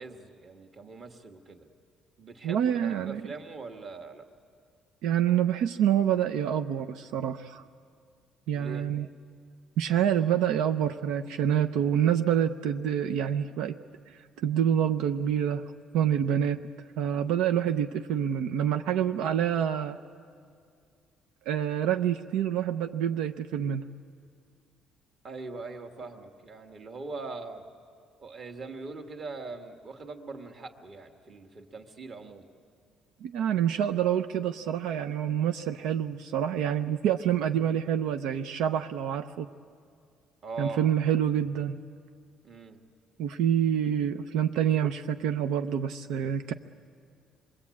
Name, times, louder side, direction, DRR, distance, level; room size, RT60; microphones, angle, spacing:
voice 1, 0.0-1.7 2.2-4.3 8.5-8.9 25.2-27.6 28.2-32.5 40.4-40.8 42.4-42.8, right 3 dB, 40° right, 5 dB, 1.8 m, -41 dB
voice 2, 2.4-3.2 5.0-7.7 8.5-9.1 9.8-13.8 14.4-16.6 17.0-20.0 21.5-23.9 33.2-39.5 40.6-41.8 43.2-46.5, right 9 dB, 90° right, 8 dB, 0.6 m, -27 dB
27.0 x 21.5 x 8.5 m, 2.3 s
cardioid pair, 150°, 0 cm